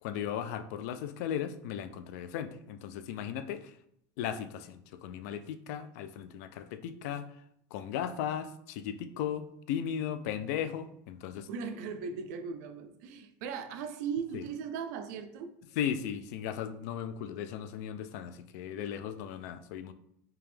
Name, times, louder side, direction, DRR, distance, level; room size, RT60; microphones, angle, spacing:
voice 1, 0.0-3.7 4.2-7.3 7.7-11.5 14.3-14.4 15.8-19.9, left 9 dB, 70° left, 11 dB, 0.4 m, -36 dB
voice 2, 11.5-15.5, right 6 dB, 70° right, 8 dB, 0.5 m, -38 dB
3.4 x 2.9 x 3.3 m, 0.72 s
cardioid pair, 165°, 9 cm